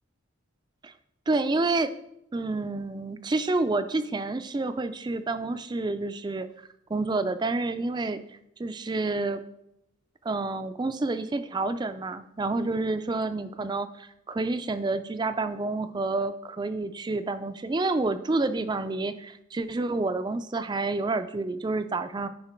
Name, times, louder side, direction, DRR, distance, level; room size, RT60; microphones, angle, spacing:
voice 1, 1.3-1.9 2.3-6.5 6.9-8.2 8.6-9.4 10.2-22.3, right 3 dB, 20° right, 11 dB, 0.3 m, -29 dB
9.5 x 5.1 x 4.4 m, 0.82 s
head